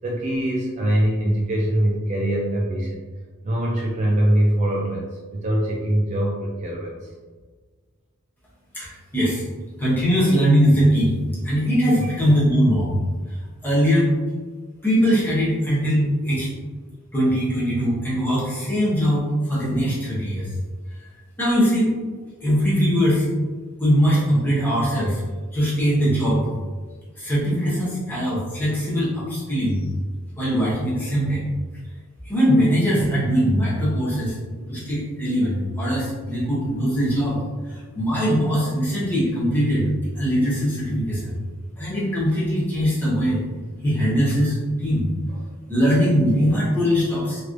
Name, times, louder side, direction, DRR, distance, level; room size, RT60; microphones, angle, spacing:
voice 1, 0.0-3.0 3.4-7.1 12.0-12.4 45.3-45.4, right 1 dB, 30° right, -3 dB, 0.4 m, -23 dB
voice 2, 8.7-9.4 9.8-11.1 11.4-13.0 13.6-14.1 14.8-16.5 17.1-20.5 21.4-21.9 22.4-23.2 23.8-25.2 25.5-26.4 27.2-29.8 30.4-31.5 32.3-34.4 34.7-37.4 37.7-39.9 40.1-41.3 41.8-43.4 43.8-45.1 45.7-47.4, equal, 10° left, -9 dB, 1.1 m, -21 dB
3.2 x 3.0 x 2.5 m, 1.5 s
head